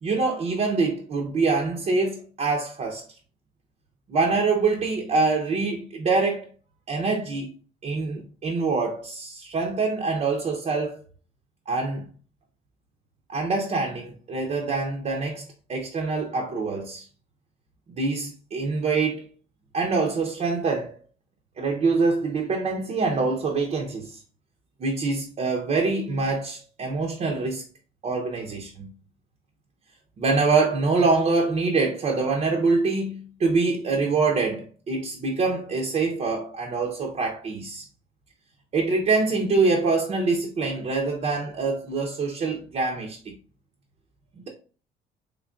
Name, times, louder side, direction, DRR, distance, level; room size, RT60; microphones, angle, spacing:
voice 1, 0.0-3.0 4.1-6.5 6.9-7.5 7.8-11.0 11.7-12.0 13.3-17.0 18.0-19.3 19.7-20.9 21.6-24.2 24.8-27.6 28.0-28.9 30.2-37.8 38.7-43.3, right 3 dB, 40° right, 0.7 m, -25 dB
3.7 x 3.3 x 2.3 m
cardioid pair, 110°, 17 cm